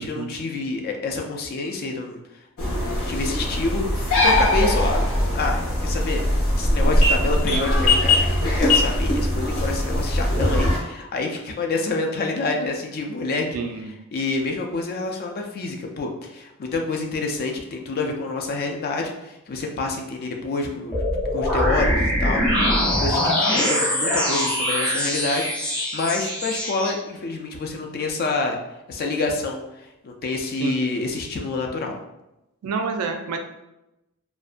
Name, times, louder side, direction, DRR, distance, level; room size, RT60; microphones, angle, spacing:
voice 1, 0.0-2.2 2.6-5.1 5.3-6.2 6.6-13.5 14.1-21.0 21.3-28.6 28.9-32.0, left 3 dB, 45° left, 2 dB, 0.4 m, -27 dB
sound 1, 2.6-10.8, left 1 dB, 85° left, 0.8 m, -21 dB
voice 2, 10.4-10.7 13.5-13.9 30.6-30.7 32.6-33.4, right 5 dB, 85° right, 5 dB, 0.4 m, -29 dB
sound 2, 20.9-26.9, equal, 5° left, 0.6 m, -22 dB
2.5 x 2.1 x 2.4 m, 0.92 s
head